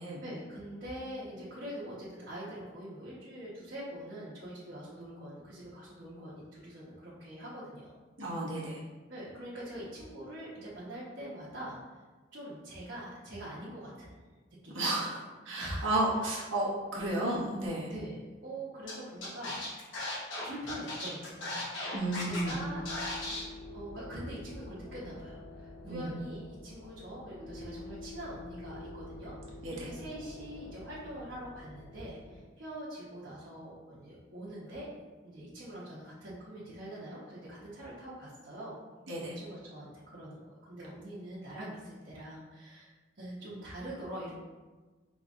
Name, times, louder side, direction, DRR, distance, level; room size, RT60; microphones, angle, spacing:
voice 1, 0.2-8.0 9.1-12.0 12.3-14.2 14.6-15.2 15.6-15.9 17.9-19.9 20.4-21.7 22.2-22.8 23.3-23.4 23.7-34.9 35.2-38.8 39.2-44.4, right 1 dB, 60° right, -10 dB, 1.1 m, -44 dB
voice 2, 8.2-8.8 14.7-15.2 15.4-17.9 21.9-22.5 25.8-26.1 29.6-29.9 39.1-39.3, right 1 dB, 85° right, -5 dB, 1.2 m, -32 dB
Scratching (performance technique), 18.9-19.0 19.2-22.5 22.9-23.4, left 2 dB, 65° left, 1.0 m, -37 dB
sound 1, 22.3-32.4, left 2 dB, 15° left, 0.5 m, -47 dB
5.0 x 3.1 x 2.5 m, 1.3 s
head